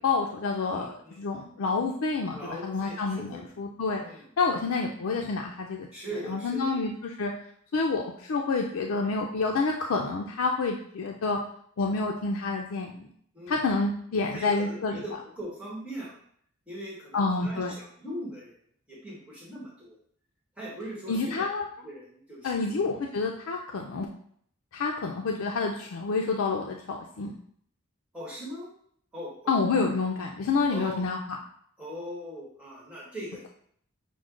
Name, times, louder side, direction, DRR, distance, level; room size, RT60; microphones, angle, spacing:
voice 1, 0.0-4.0 4.4-5.9 6.3-7.3 7.7-11.4 11.8-13.1 13.5-14.9 17.1-17.7 21.1-21.7 22.4-24.1 24.7-27.3 29.5-31.2, left 4 dB, 90° left, 1 dB, 0.4 m, -28 dB
voice 2, 0.7-1.2 2.3-3.4 4.0-4.2 5.9-6.8 13.3-13.8 14.3-16.2 16.7-18.5 18.9-20.0 20.6-21.5 21.8-22.8 28.1-28.7 29.1-29.6 30.7-31.0 31.8-33.4, equal, 5° right, -7 dB, 1.1 m, -40 dB
6.1 x 2.1 x 3.7 m, 0.63 s
head